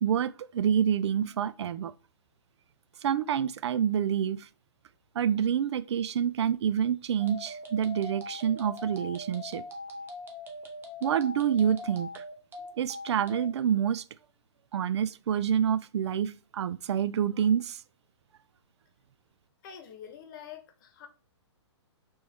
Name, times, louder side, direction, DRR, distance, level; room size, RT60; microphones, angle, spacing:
voice 1, 0.0-1.9 3.0-4.5 5.2-9.6 11.0-12.2 12.8-14.0 14.7-17.8, right 8 dB, 70° right, 0.4 m, -27 dB
sound 1, 7.2-13.5, left 2 dB, 15° right, 0.8 m, -42 dB
voice 2, 19.6-21.1, left 8 dB, 45° left, 1.0 m, -46 dB
4.4 x 3.1 x 3.4 m
hypercardioid pair, 135°, 15 cm